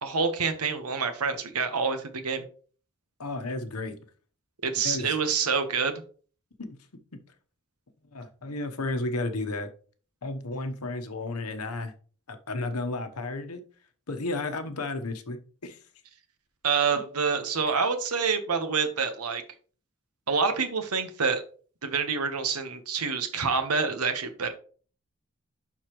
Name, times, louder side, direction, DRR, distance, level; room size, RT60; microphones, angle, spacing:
voice 1, 0.0-2.4 4.6-5.9 16.6-19.4 20.3-21.4 21.8-24.5, right 5 dB, 90° right, 1.2 m, -27 dB
voice 2, 3.2-4.0 4.8-5.2 6.6-6.8 8.1-9.7 10.2-11.9 12.3-13.6 14.1-15.8 16.9-17.0, left 2 dB, 90° left, 1.0 m, -33 dB
11.5 x 4.1 x 3.1 m
head